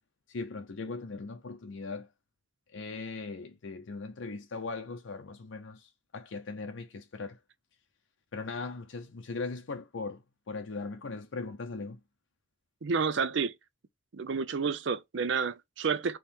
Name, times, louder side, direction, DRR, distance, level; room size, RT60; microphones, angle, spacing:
voice 1, 0.3-2.1 2.7-7.4 8.3-12.0, left 3 dB, 75° left, 0.6 m, -39 dB
voice 2, 12.8-13.5 14.1-16.2, right 5 dB, 65° right, 0.5 m, -30 dB
3.6 x 3.1 x 4.3 m
head